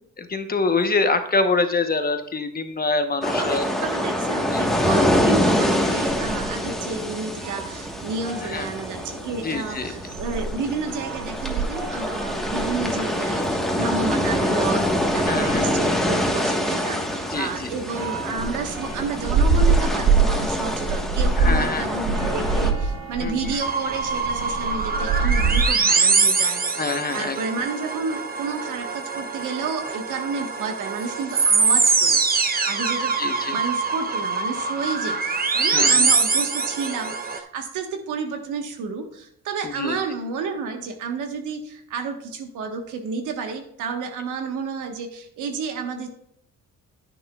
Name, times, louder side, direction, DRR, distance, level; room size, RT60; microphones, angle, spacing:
voice 1, 0.3-3.7 4.5-4.6 8.5-8.7 9.4-9.9 15.2-15.7 17.3-17.7 21.4-21.9 23.2-23.6 26.8-27.4 33.2-33.6 35.7-36.1 39.6-40.0, left 3 dB, 30° left, 7 dB, 1.1 m, -25 dB
sound 1, 3.2-22.7, left 1 dB, ahead, 1.4 m, -25 dB
voice 2, 3.4-33.1 33.5-46.1, right 4 dB, 85° right, 5 dB, 1.5 m, -31 dB
sound 2, 6.0-25.6, right 4 dB, 60° right, 1.8 m, -27 dB
sound 3, 23.6-37.4, right 4 dB, 30° right, 0.9 m, -23 dB
10.0 x 9.3 x 2.4 m, 0.69 s
cardioid pair, 90°, 30 cm